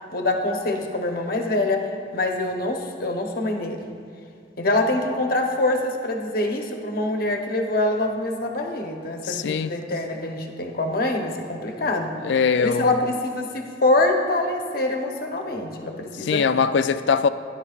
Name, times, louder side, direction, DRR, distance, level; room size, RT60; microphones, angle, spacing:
voice 1, 0.1-3.9 4.6-16.4, left 2 dB, 50° left, 2 dB, 0.9 m, -25 dB
voice 2, 9.2-9.7 12.2-12.9 16.2-17.3, left 6 dB, 75° left, 12 dB, 0.4 m, -21 dB
15.5 x 10.5 x 2.4 m, 2.3 s
head